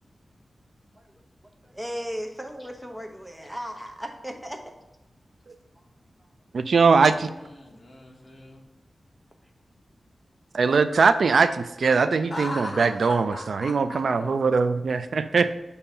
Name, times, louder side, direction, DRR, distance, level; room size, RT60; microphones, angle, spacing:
voice 1, 1.6-4.6, equal, 10° right, 3 dB, 0.8 m, -36 dB
voice 2, 6.5-7.3 10.5-15.5, right 4 dB, 75° right, 11 dB, 0.3 m, -21 dB
voice 3, 7.1-8.6 12.3-14.3, left 1 dB, 30° left, -2 dB, 1.3 m, -38 dB
6.9 x 2.8 x 5.5 m, 1.0 s
wide cardioid pair, 105°, 0 cm